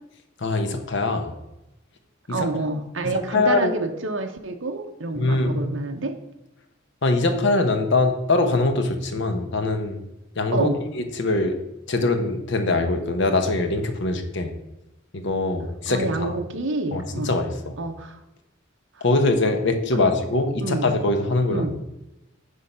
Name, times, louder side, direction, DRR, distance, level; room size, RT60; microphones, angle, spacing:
voice 1, 0.4-1.3 2.3-2.5 3.0-3.8 5.2-5.6 7.0-10.0 10.4-11.6 11.9-14.5 15.1-16.4 16.9-17.8 19.0-21.8, left 2 dB, 60° left, 6 dB, 1.0 m, -23 dB
voice 2, 2.3-6.2 10.5-10.8 15.9-17.3 17.8-18.2 19.9-20.1 20.6-20.9 21.5-21.7, right 2 dB, 65° right, 5 dB, 0.9 m, -28 dB
9.9 x 3.8 x 5.6 m, 0.93 s
head